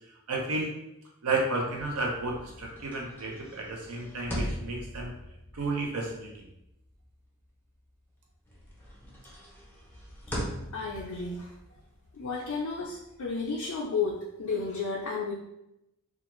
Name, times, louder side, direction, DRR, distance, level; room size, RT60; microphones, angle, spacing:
voice 1, 0.3-0.7 1.2-5.1 5.5-6.3, right 2 dB, 80° right, -1 dB, 0.7 m, -32 dB
sound 1, 1.8-8.1 8.5-13.9, equal, 10° left, 0.6 m, -42 dB
voice 2, 10.7-11.5 12.1-15.3, left 4 dB, 70° left, -3 dB, 0.4 m, -32 dB
2.4 x 2.4 x 3.0 m, 0.87 s
head